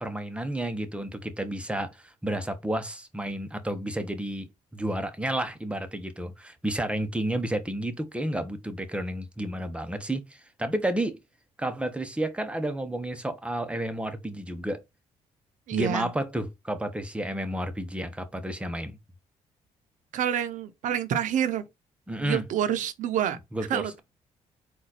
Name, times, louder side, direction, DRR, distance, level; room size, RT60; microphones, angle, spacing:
voice 1, 0.0-11.2 11.6-14.8 15.7-19.0 22.1-22.4 23.5-23.9, right 1 dB, 10° right, 1.0 m, -31 dB
voice 2, 15.7-16.1 20.1-21.6 22.2-23.4 23.7-24.0, right 9 dB, 70° right, 0.8 m, -27 dB
4.0 x 2.6 x 4.1 m
supercardioid pair, 70°, 13 cm